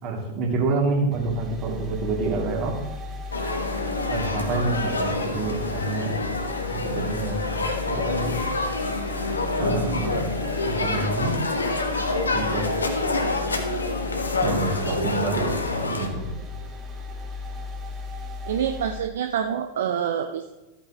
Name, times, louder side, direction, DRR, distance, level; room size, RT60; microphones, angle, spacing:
voice 1, 0.0-2.8 4.1-6.1 6.7-7.5 7.9-8.4 9.6-10.3 10.7-11.4 12.3-12.7 14.4-16.3, right 3 dB, 40° right, 0 dB, 2.8 m, -27 dB
sound 1, 1.1-19.0, left 3 dB, 25° right, 2.0 m, -36 dB
sound 2, 3.3-16.1, left 2 dB, 75° left, 1.3 m, -27 dB
voice 2, 18.5-20.5, right 8 dB, 60° right, 6 dB, 0.6 m, -26 dB
13.5 x 8.8 x 3.1 m, 1.1 s
figure-of-eight pair, 90°, 0 cm